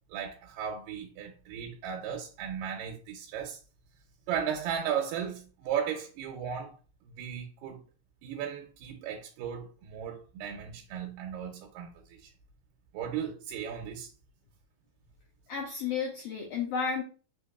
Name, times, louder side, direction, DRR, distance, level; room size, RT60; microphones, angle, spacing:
voice 1, 0.1-3.6 4.3-6.7 7.0-7.8 8.2-11.9 12.2-12.3 12.9-14.1, right 8 dB, 85° right, 2.3 m, -36 dB
voice 2, 15.5-17.0, left 6 dB, 80° left, 1.4 m, -32 dB
5.1 x 3.4 x 2.3 m
omnidirectional pair, 3.8 m